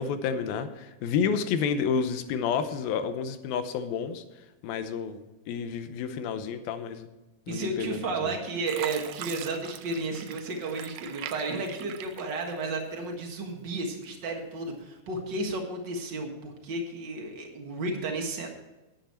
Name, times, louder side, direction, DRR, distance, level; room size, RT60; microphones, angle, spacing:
voice 1, 0.0-4.2 4.6-5.2 5.5-7.1 7.5-8.3, left 6 dB, 80° left, 10 dB, 2.6 m, -30 dB
voice 2, 7.5-18.5, right 2 dB, 55° right, 1 dB, 1.3 m, -33 dB
Fill (with liquid), 7.9-8.3 8.7-13.1 13.5-14.3 14.8-15.0, right 12 dB, 85° right, 1.8 m, -42 dB
10.5 x 9.9 x 4.3 m, 1.1 s
omnidirectional pair, 4.4 m